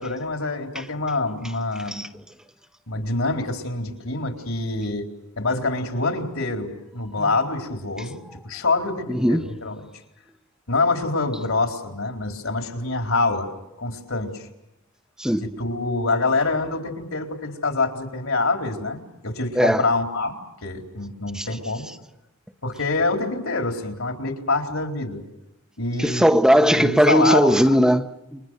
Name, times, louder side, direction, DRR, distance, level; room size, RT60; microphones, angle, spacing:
voice 1, 0.0-2.0 2.9-5.1 5.4-9.8 10.7-13.5 13.8-14.5 15.4-20.4 20.6-21.9 22.6-25.2 25.8-26.3 26.7-27.8, left 3 dB, 75° left, 4.2 m, -26 dB
voice 2, 9.1-9.5 15.2-15.5 19.6-19.8 21.3-21.5 26.0-28.4, equal, 5° right, 0.9 m, -18 dB
29.5 x 25.0 x 6.5 m
head